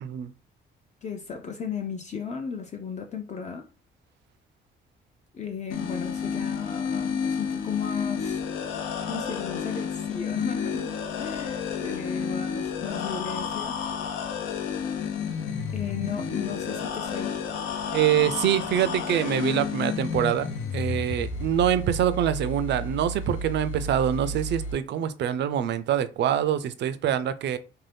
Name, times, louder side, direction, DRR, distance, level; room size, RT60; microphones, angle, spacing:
voice 1, 0.0-0.3 17.9-27.6, right 10 dB, 60° right, 0.4 m, -25 dB
voice 2, 1.0-3.7 5.3-8.4 9.1-13.8 15.7-17.4, left 6 dB, 35° left, 0.5 m, -35 dB
sound 1, 5.7-24.7, left 5 dB, 85° left, 0.6 m, -31 dB
2.7 x 2.2 x 3.3 m
cardioid pair, 90°, 20 cm